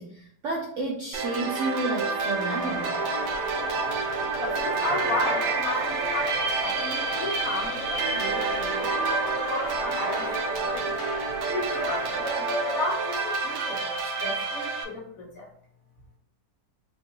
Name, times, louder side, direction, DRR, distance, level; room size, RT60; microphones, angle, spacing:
voice 1, 0.0-3.0, right 2 dB, 65° right, -1 dB, 0.8 m, -31 dB
sound 1, 1.1-14.8, right 4 dB, 85° right, 1.2 m, -28 dB
sound 2, 2.5-12.3, left 2 dB, 80° left, 1.5 m, -37 dB
voice 2, 4.4-6.4 6.6-10.9 11.5-13.9 14.2-15.5, left 1 dB, 60° left, -2 dB, 1.3 m, -33 dB
4.5 x 2.6 x 2.7 m, 0.64 s
omnidirectional pair, 1.8 m